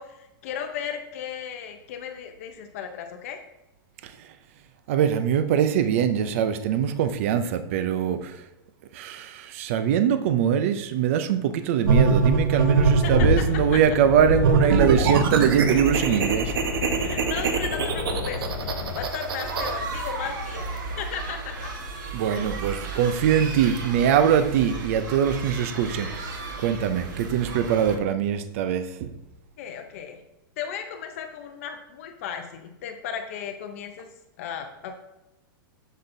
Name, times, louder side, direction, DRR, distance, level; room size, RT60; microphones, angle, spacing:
voice 1, 0.0-3.4 12.5-12.6 13.0-13.4 13.7-13.8 16.9-20.7 21.0-21.7 29.6-30.2 30.6-34.1 34.4-35.0, left 8 dB, 40° left, 0.6 m, -35 dB
voice 2, 4.9-8.4 8.9-16.5 22.1-26.2 26.6-29.1, right 8 dB, 35° right, 0.4 m, -23 dB
sound 1, 11.9-13.5 14.2-19.7, right 4 dB, 90° right, 1.0 m, -22 dB
sound 2, 12.7-19.1, left 8 dB, 80° left, 0.5 m, -33 dB
sound 3, 18.9-28.0, right 3 dB, 60° right, 1.3 m, -34 dB
7.6 x 7.3 x 2.6 m
supercardioid pair, 180°, 12 cm